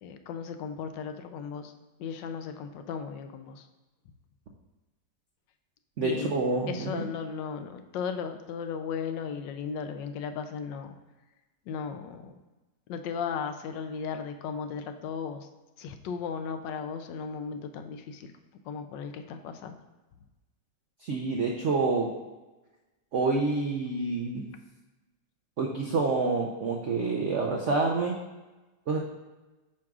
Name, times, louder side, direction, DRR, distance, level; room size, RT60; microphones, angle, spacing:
voice 1, 0.0-1.7 2.0-3.7 6.0-6.3 6.7-11.0 11.7-12.4 12.9-15.5 15.8-18.3 18.6-19.8, left 6 dB, 80° left, 8 dB, 1.2 m, -36 dB
voice 2, 6.0-7.0 21.0-22.1 23.1-24.5 25.6-28.2 28.9-29.0, right 3 dB, 75° right, 0 dB, 0.6 m, -27 dB
8.5 x 6.1 x 2.4 m, 1.1 s
omnidirectional pair, 2.0 m